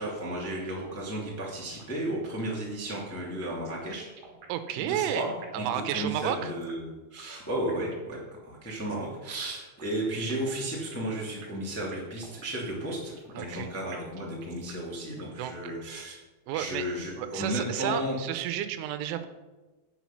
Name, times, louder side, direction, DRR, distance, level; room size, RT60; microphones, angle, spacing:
voice 1, 0.0-4.1 4.8-5.3 5.6-16.2 16.5-18.1, right 1 dB, 15° left, -4 dB, 0.5 m, -34 dB
sound 1, 0.7-1.1 1.4-1.5 1.8-1.9 2.3-3.1 3.4-5.6 5.9-6.9 7.2-7.3 7.7-8.2 8.7-9.1 9.4-9.5 9.8-9.9 10.3-11.1 11.4-13.6 13.9-14.9 15.2-15.3 15.7-16.2, right 5 dB, 60° right, 3.0 m, -50 dB
voice 2, 4.5-6.5 13.4-13.7 15.4-15.7 16.5-16.9 17.2-19.3, right 10 dB, 90° right, 10 dB, 3.2 m, -32 dB
10.5 x 7.9 x 5.9 m, 1.2 s
omnidirectional pair, 5.4 m